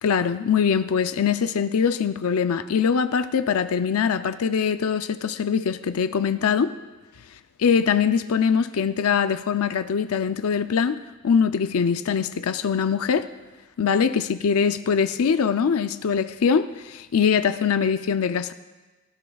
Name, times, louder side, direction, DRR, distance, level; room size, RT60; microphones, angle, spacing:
voice 1, 0.0-6.7 7.6-11.0 11.2-13.3 13.8-18.5, left 6 dB, 75° left, 11 dB, 0.5 m, -22 dB
18.5 x 15.0 x 2.3 m, 1.2 s
head